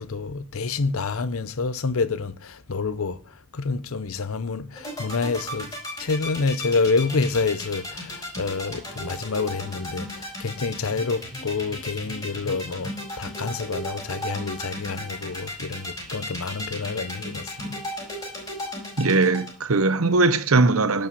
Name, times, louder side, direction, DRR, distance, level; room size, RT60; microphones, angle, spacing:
voice 1, 0.0-5.7 6.0-18.1, left 4 dB, 75° left, 0.7 m, -28 dB
sound 1, 4.8-19.5, left 1 dB, 20° left, 5.1 m, -34 dB
voice 2, 19.0-21.1, right 3 dB, 75° right, 0.9 m, -20 dB
11.0 x 5.4 x 6.9 m
head